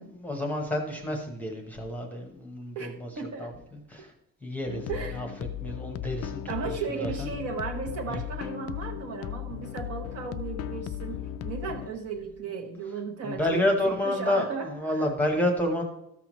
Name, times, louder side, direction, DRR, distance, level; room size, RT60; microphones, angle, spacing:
voice 1, 0.0-3.1 3.4-4.1 4.4-5.3 5.6-7.3 8.1-8.2 13.2-15.8, left 1 dB, 5° left, 2 dB, 0.9 m, -30 dB
voice 2, 2.7-3.5 4.9-5.3 6.5-15.0, right 5 dB, 50° right, 2 dB, 1.1 m, -36 dB
sound 1, 4.7-11.9, left 11 dB, 45° left, 0.4 m, -36 dB
13.5 x 5.8 x 3.0 m, 0.82 s
cardioid pair, 175°, 32 cm